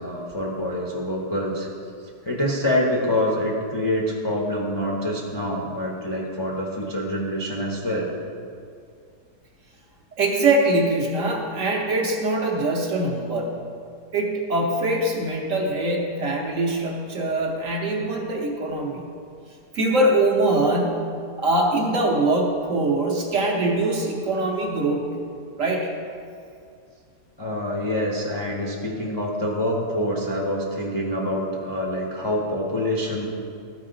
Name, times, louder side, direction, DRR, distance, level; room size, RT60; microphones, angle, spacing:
voice 1, 0.0-1.7 2.2-8.1 27.4-33.3, left 1 dB, 25° left, -3 dB, 0.5 m, -26 dB
voice 2, 10.2-13.6 14.1-19.1 19.7-21.1 21.4-25.2 25.6-25.9, right 2 dB, 55° right, -1 dB, 1.1 m, -23 dB
13.0 x 4.8 x 3.8 m, 2.3 s
omnidirectional pair, 1.9 m